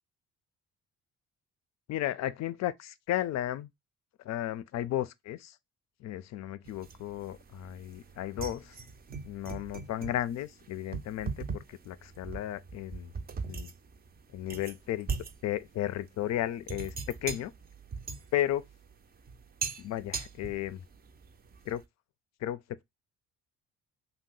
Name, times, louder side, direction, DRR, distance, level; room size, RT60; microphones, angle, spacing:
voice 1, 1.9-3.7 4.2-5.6 6.0-8.8 9.3-13.1 13.5-13.7 14.3-15.1 15.4-17.5 18.3-18.6 19.8-20.8 21.7-21.8 22.4-22.8, left 13 dB, 60° left, 0.4 m, -34 dB
sound 1, 6.6-21.8, right 5 dB, 30° right, 0.5 m, -41 dB
2.8 x 2.1 x 3.7 m
supercardioid pair, 80°, 31 cm